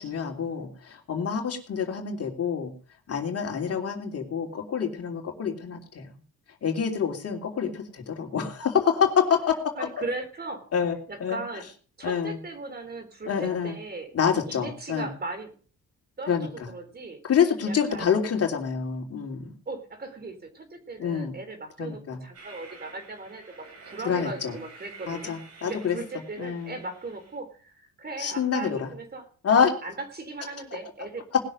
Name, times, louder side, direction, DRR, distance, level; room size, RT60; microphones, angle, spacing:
voice 1, 0.0-2.7 3.1-6.0 6.6-9.9 10.7-11.4 12.0-12.4 13.3-13.7 14.1-15.1 16.3-16.5 17.3-19.5 21.0-21.3 21.8-22.2 24.0-24.5 25.1-26.0 26.4-26.8 28.2-28.9 29.4-29.7, left 7 dB, 50° left, 3 dB, 3.1 m, -27 dB
voice 2, 9.8-10.7 11.1-11.7 12.0-14.1 14.5-15.5 16.2-17.2 17.6-18.1 19.7-25.3 25.6-31.3, right 3 dB, 30° right, 7 dB, 4.0 m, -38 dB
Train, 22.3-27.4, right 4 dB, 55° right, 5.5 m, -49 dB
19.5 x 6.6 x 6.5 m, 0.42 s
cardioid pair, 90°, 30 cm